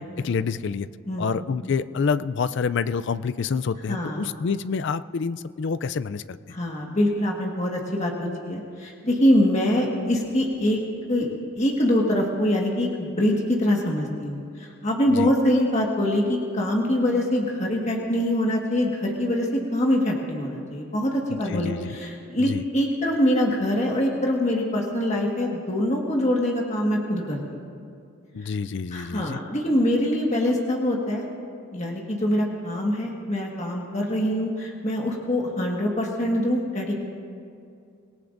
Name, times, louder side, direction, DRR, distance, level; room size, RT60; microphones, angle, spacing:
voice 1, 0.2-0.9 1.2-6.4 15.1-15.3 21.3-21.9 22.4-22.6 28.3-29.4, left 5 dB, 55° left, 15 dB, 0.4 m, -27 dB
voice 2, 3.9-4.3 6.5-10.8 11.1-11.3 11.5-27.4 28.9-31.2 31.7-37.0, left 1 dB, 30° left, -1 dB, 1.6 m, -24 dB
25.5 x 18.0 x 2.6 m, 2.4 s
head